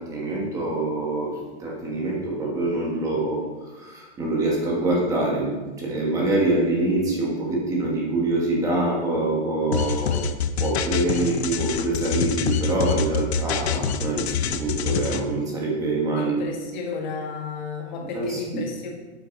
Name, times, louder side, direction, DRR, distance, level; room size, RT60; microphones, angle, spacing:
voice 1, 0.0-16.4 18.1-18.7, right 2 dB, 10° right, -2 dB, 1.4 m, -25 dB
sound 1, 9.7-15.2, left 6 dB, 60° left, 0.8 m, -25 dB
voice 2, 16.2-18.9, left 4 dB, 40° left, 0 dB, 2.1 m, -33 dB
8.6 x 7.7 x 5.2 m, 1.2 s
hypercardioid pair, 175°, 36 cm